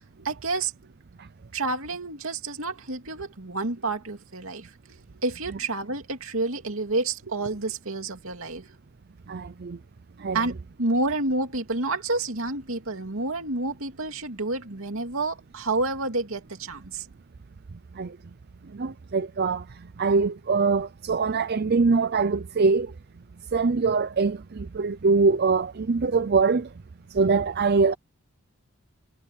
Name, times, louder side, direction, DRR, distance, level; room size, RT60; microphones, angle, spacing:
voice 1, 0.2-0.7 1.5-8.7 10.3-17.1, right 2 dB, 65° right, 2.7 m, -29 dB
voice 2, 9.3-9.8 10.2-10.4 18.0-18.1 18.7-19.6 20.0-22.9 23.5-26.7 27.1-27.9, right 4 dB, 45° right, 0.5 m, -23 dB
head